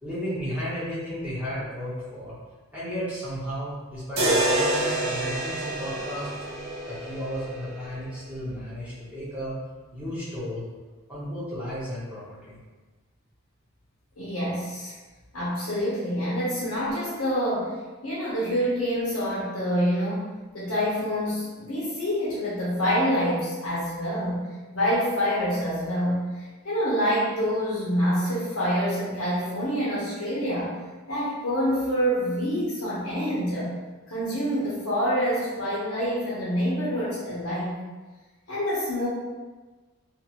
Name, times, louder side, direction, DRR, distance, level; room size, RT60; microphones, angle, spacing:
voice 1, 0.0-2.3 2.7-6.3 6.9-9.5 9.9-10.6 11.1-12.6, equal, 5° right, -10 dB, 0.9 m, -33 dB
sound 1, 4.2-8.2, right 1 dB, 80° right, 0.7 m, -27 dB
voice 2, 14.2-14.9 15.3-17.7 18.0-24.4 24.7-30.7 31.1-33.7 34.1-37.7 38.5-39.1, equal, 75° left, -9 dB, 0.9 m, -26 dB
2.6 x 2.5 x 2.9 m, 1.3 s
head